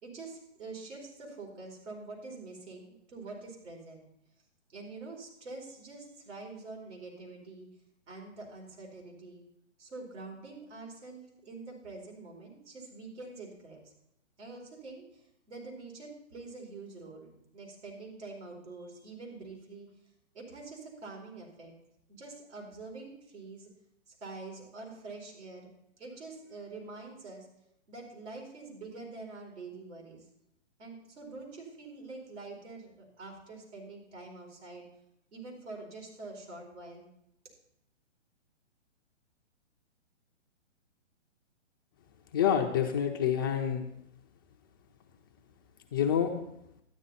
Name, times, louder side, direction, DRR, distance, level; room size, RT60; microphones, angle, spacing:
voice 1, 0.0-4.1 4.7-7.7 8.1-9.4 9.8-13.9 14.4-19.9 20.3-21.7 22.1-23.7 24.1-25.7 26.0-27.5 27.9-30.2 30.8-34.9 35.3-37.1, right 3 dB, 70° right, 0 dB, 4.6 m, -46 dB
voice 2, 42.3-43.8 45.9-46.5, left 9 dB, 20° left, 2 dB, 0.4 m, -27 dB
12.5 x 9.9 x 4.2 m, 0.78 s
hypercardioid pair, 140°, 36 cm